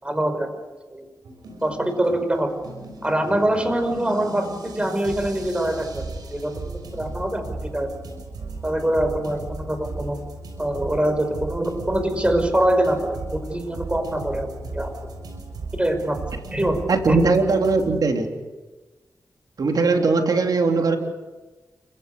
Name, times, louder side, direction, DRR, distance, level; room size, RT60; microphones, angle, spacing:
voice 1, 0.0-0.5 0.9-1.1 1.6-2.6 3.0-6.0 6.3-7.9 8.6-10.2 10.6-14.9 15.8-16.2 16.5-17.2, right 1 dB, 15° right, 7 dB, 5.6 m, -24 dB
sound 1, 1.2-17.8, right 2 dB, 90° right, 6.0 m, -36 dB
voice 2, 16.9-18.3 19.6-21.0, right 4 dB, 70° right, 3 dB, 3.4 m, -20 dB
28.5 x 16.5 x 6.8 m, 1.2 s
cardioid pair, 50°, 7 cm